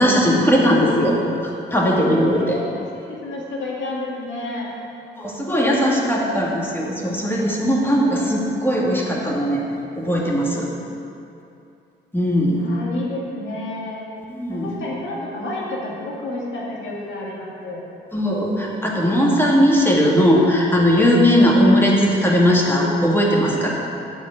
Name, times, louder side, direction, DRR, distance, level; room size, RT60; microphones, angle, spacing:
voice 1, 0.0-2.6 5.2-9.6 10.0-10.7 12.1-12.6 14.3-14.7 18.1-23.7, equal, 10° left, -3 dB, 1.9 m, -18 dB
voice 2, 2.3-4.7 12.6-14.0 14.5-17.8, left 2 dB, 70° left, -4 dB, 2.1 m, -30 dB
9.9 x 4.2 x 7.4 m, 2.7 s
cardioid pair, 90°, 20 cm